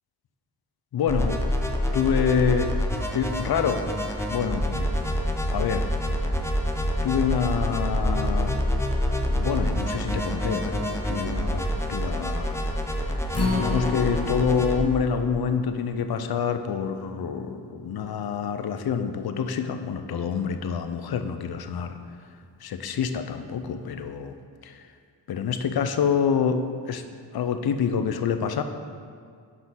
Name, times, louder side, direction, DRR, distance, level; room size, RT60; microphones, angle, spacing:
voice 1, 0.9-1.4 1.9-2.7 3.1-3.8 4.3-4.9 5.5-5.8 7.0-8.6 9.3-12.6 13.5-22.0 22.6-24.3 24.6-24.8 25.3-27.0 27.3-28.6, left 7 dB, 55° left, 8 dB, 0.7 m, -27 dB
sound 1, 1.1-14.8, equal, 5° left, 0.9 m, -27 dB
Acoustic guitar, 13.3-19.6 20.0-20.1 20.6-20.7, left 3 dB, 35° left, 1.2 m, -33 dB
5.9 x 5.0 x 5.7 m, 2.2 s
cardioid pair, 45°, 44 cm